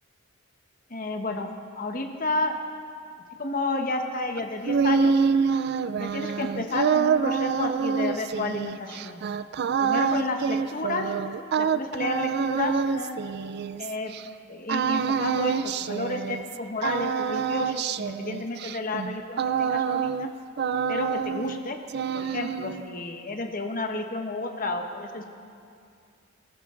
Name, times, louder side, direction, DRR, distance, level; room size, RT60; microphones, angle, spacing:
voice 1, 0.9-1.5 1.8-2.5 3.4-5.1 6.0-9.2 9.8-11.1 11.6-13.2 13.8-14.1 14.5-20.3 20.9-21.8 22.1-25.2, left 2 dB, 40° left, 4 dB, 1.1 m, -31 dB
sound 1, 4.4-14.2 14.7-16.6 16.8-20.3 20.6-21.6 21.9-22.9, right 6 dB, 50° right, 0.3 m, -26 dB
19.5 x 14.5 x 3.8 m, 2.4 s
head